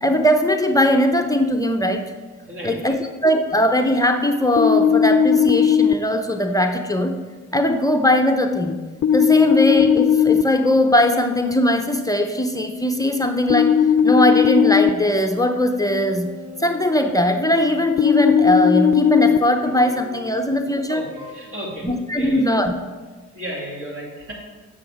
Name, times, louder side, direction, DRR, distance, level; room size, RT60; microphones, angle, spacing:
voice 1, 0.0-2.1 2.6-7.2 7.5-8.8 9.1-16.3 16.6-21.1 21.8-22.7, left 1 dB, 10° left, 5 dB, 0.7 m, -20 dB
voice 2, 2.5-3.0 9.3-9.4 20.9-21.0 21.3-21.9 22.1-22.4 23.3-24.3, right 1 dB, 45° right, -3 dB, 3.0 m, -33 dB
sound 1, 4.6-5.9 9.0-10.4 13.5-14.9 18.0-19.4, left 8 dB, 50° left, 0.5 m, -16 dB
sound 2, 15.6-17.7 18.4-20.4 21.2-21.3, left 5 dB, 90° right, 3.1 m, -40 dB
8.9 x 6.4 x 4.9 m, 1.3 s
cardioid pair, 90°, 30 cm